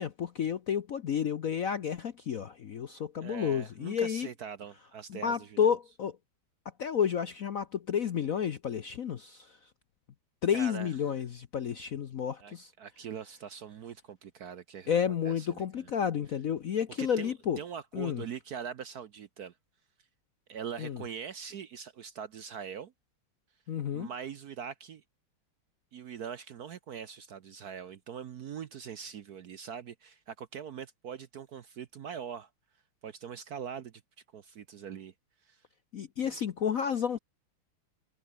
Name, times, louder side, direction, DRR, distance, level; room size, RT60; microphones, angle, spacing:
voice 1, 0.0-4.3 5.1-6.1 6.8-9.5 10.4-12.7 14.9-17.6 17.9-18.2 20.8-21.0 23.7-24.1 35.9-37.2, left 8 dB, 55° left, 0.9 m, -31 dB
voice 2, 3.2-5.8 10.5-11.0 12.4-15.9 17.0-19.5 20.5-22.9 23.9-25.0 25.9-32.5 33.0-34.0 34.3-35.1 35.4-35.6 36.2-36.4, right 7 dB, 60° right, 1.1 m, -42 dB
omnidirectional pair, 2.4 m